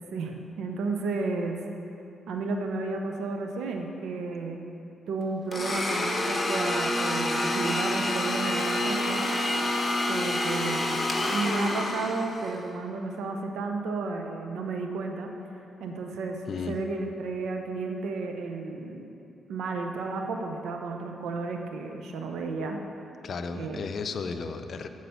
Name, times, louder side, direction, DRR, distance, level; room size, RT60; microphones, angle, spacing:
voice 1, 0.1-1.6 2.3-4.6 5.1-9.3 10.1-11.0 11.3-15.3 15.8-16.4 16.7-19.1 19.5-22.8 23.5-23.8, right 3 dB, 75° right, 3 dB, 0.7 m, -32 dB
Domestic sounds home sounds, 5.5-12.6, left 1 dB, 25° left, 1.3 m, -28 dB
voice 2, 16.5-16.8 23.2-24.9, left 5 dB, 60° left, 8 dB, 0.5 m, -34 dB
7.9 x 5.0 x 7.0 m, 2.8 s
supercardioid pair, 55°, 0 cm